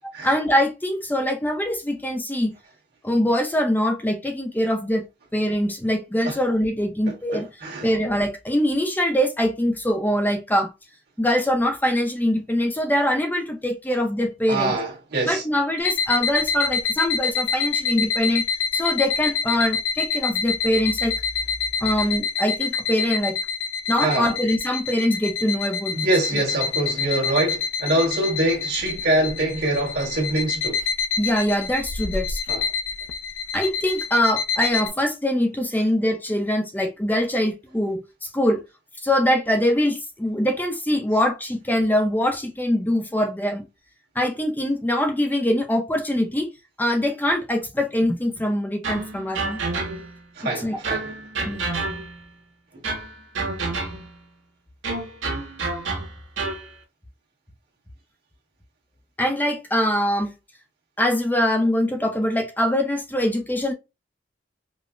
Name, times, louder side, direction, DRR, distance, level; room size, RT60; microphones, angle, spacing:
voice 1, 0.2-2.5 3.0-5.0 5.3-7.5 7.8-10.7 11.2-14.8 15.3-18.5 18.7-21.1 21.8-23.4 23.9-26.4 31.2-32.4 33.5-38.6 39.0-43.6 44.2-46.5 46.8-49.6 50.6-50.8 51.4-51.7 59.2-60.3 61.0-63.7, equal, 10° left, 0.5 m, -23 dB
voice 2, 7.3-7.9 14.5-15.4 24.0-24.3 25.9-30.8 32.5-32.6 50.4-51.2, right 2 dB, 60° right, 1.5 m, -24 dB
sound 1, 15.8-34.9, left 6 dB, 80° left, 0.5 m, -27 dB
sound 2, 48.8-50.2 50.8-52.3 52.8-54.2 54.8-56.7, right 3 dB, 90° right, 1.1 m, -29 dB
5.1 x 2.0 x 2.4 m
head